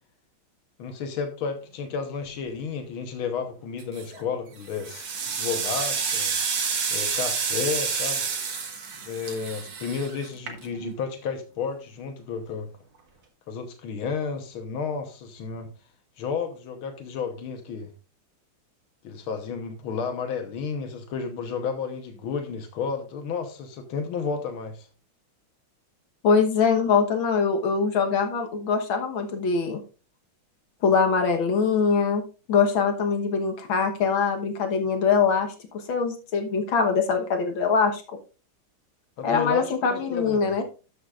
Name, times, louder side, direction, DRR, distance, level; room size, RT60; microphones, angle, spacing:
voice 1, 0.8-5.1 5.4-6.3 6.9-8.2 9.0-12.7 13.5-15.7 16.2-17.9 19.0-24.9 39.2-40.6, left 5 dB, 90° left, 6 dB, 1.9 m, -32 dB
sound 1, 3.8-4.2 4.7-10.9, right 6 dB, 90° right, 2.5 m, -29 dB
voice 2, 26.2-29.8 30.8-32.2 32.5-38.0 39.2-40.6, left 5 dB, 70° left, 4 dB, 2.0 m, -23 dB
12.5 x 7.9 x 2.5 m, 0.34 s
omnidirectional pair, 2.3 m